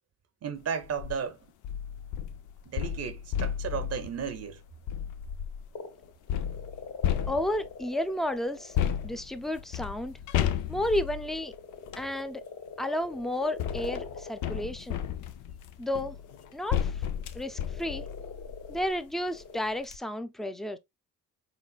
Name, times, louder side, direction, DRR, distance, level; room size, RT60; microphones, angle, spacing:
voice 1, 0.4-1.4 2.7-4.6, right 7 dB, 55° right, 0.7 m, -34 dB
sound 1, 0.8-1.2 1.6-5.7 6.3-7.8 8.7-12.1 13.1-19.0 19.4-19.5 19.8-20.0, left 9 dB, 80° left, 0.5 m, -33 dB
sound 2, 5.7-9.1 9.5-9.8 11.2-15.0 15.9-19.6, left 5 dB, 50° left, 1.2 m, -44 dB
voice 2, 7.3-8.7 9.0-10.2 10.7-11.5 12.0-12.4 12.8-15.0 15.8-16.2 16.5-16.9 17.3-18.1 18.7-20.8, left 1 dB, ahead, 0.5 m, -32 dB
4.2 x 4.0 x 2.3 m
cardioid pair, 90°, 30 cm